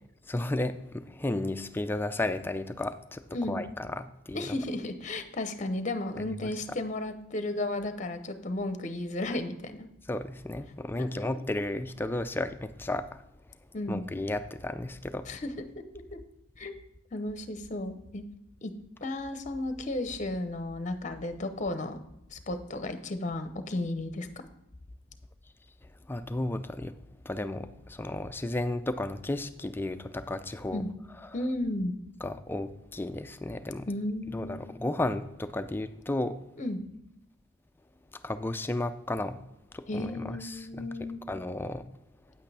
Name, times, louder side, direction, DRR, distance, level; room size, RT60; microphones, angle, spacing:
voice 1, 0.3-4.6 6.2-6.5 10.1-13.2 13.9-15.3 26.1-26.9 27.3-30.8 31.2-31.3 32.2-33.9 34.3-36.4 38.2-39.4 39.7-40.9 41.3-41.8, left 1 dB, 10° left, 10 dB, 0.4 m, -33 dB
voice 2, 4.3-9.9 11.0-11.3 13.7-14.0 15.2-15.8 16.1-16.2 16.6-16.7 17.1-18.2 18.6-18.7 19.0-22.0 22.3-24.5 30.7-30.9 31.3-31.9 33.9-34.6 36.6-36.8 39.9-41.2, left 1 dB, 35° left, 9 dB, 0.7 m, -34 dB
9.1 x 8.4 x 3.4 m, 0.87 s
head